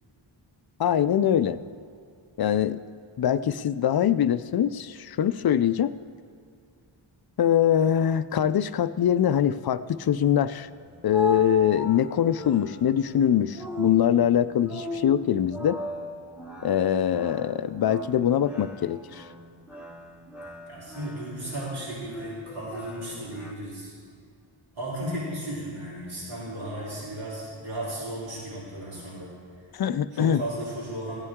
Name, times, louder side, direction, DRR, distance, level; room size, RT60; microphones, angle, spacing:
voice 1, 0.8-1.6 2.4-2.8 3.2-5.9 7.4-10.7 11.0-15.8 16.6-19.2 29.7-30.4, left 9 dB, 50° left, 15 dB, 0.5 m, -23 dB
sound 1, 10.7-23.5, left 1 dB, ahead, 1.1 m, -37 dB
voice 2, 20.7-23.9 24.7-29.3 30.1-31.2, right 1 dB, 75° right, -8 dB, 3.4 m, -35 dB
15.5 x 9.6 x 3.6 m, 2.4 s
wide cardioid pair, 65°, 49 cm